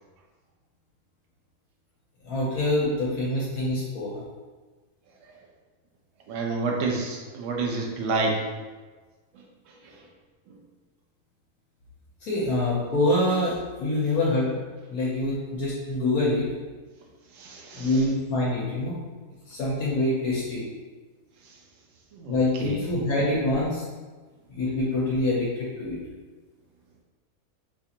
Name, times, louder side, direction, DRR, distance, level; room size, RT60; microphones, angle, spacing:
voice 1, 2.2-4.1 12.2-14.5 14.9-16.4 17.7-18.9 19.5-20.6 22.3-23.8 24.6-25.5 25.8-26.0, left 1 dB, 75° left, -6 dB, 1.2 m, -25 dB
voice 2, 6.3-8.4 9.3-10.0 17.3-18.0 21.4-21.5 22.1-22.8, right 3 dB, 65° right, 0 dB, 0.9 m, -30 dB
4.3 x 2.4 x 2.8 m, 1.3 s
omnidirectional pair, 1.6 m